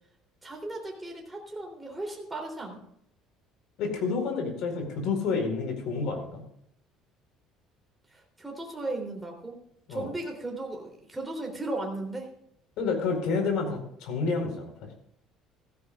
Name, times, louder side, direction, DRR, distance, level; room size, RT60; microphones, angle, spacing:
voice 1, 0.4-2.8 8.1-9.6 9.9-12.3, right 2 dB, 10° right, 0 dB, 3.4 m, -36 dB
voice 2, 3.8-6.4 9.9-10.1 12.8-14.7, left 4 dB, 65° left, 4 dB, 4.6 m, -29 dB
16.0 x 15.5 x 2.5 m, 0.71 s
cardioid pair, 165°, 0 cm